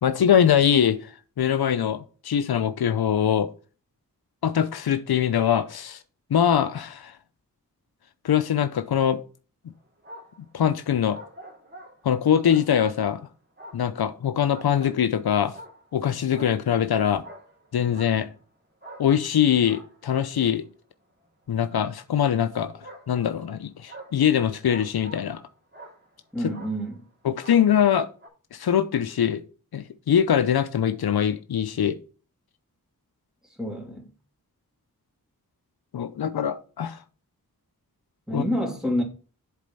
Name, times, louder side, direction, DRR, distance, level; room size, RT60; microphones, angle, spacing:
voice 1, 0.0-3.5 4.4-6.0 6.3-7.1 8.2-9.2 10.5-11.2 12.0-13.3 13.7-15.5 15.9-17.2 17.7-18.3 19.0-20.7 21.5-22.7 23.1-25.4 27.2-28.1 28.5-29.4 29.7-32.0 35.9-37.0 38.3-38.4, left 9 dB, 90° left, 0.6 m, -23 dB
sound 1, 9.7-10.5 11.1-13.2 13.6-15.1 15.5-16.0 16.3-18.4 18.8-20.7 21.5-21.7 22.8-25.5 25.7-26.2 26.5-27.0 27.4-27.9 28.2-28.3, right 1 dB, 30° right, 2.5 m, -46 dB
voice 2, 26.3-27.0 33.6-34.1 38.3-39.0, equal, ahead, 2.8 m, -27 dB
7.6 x 4.2 x 5.4 m
wide cardioid pair, 60°, 36 cm